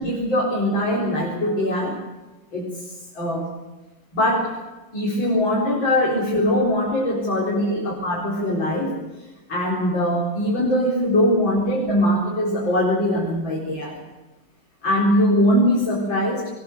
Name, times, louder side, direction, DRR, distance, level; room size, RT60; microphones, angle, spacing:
voice 1, 0.0-2.0 2.5-3.5 4.1-4.6 4.9-9.0 9.5-14.0 14.8-16.5, equal, 85° left, -4 dB, 5.2 m, -21 dB
23.0 x 21.0 x 7.7 m, 1.1 s
omnidirectional pair, 2.0 m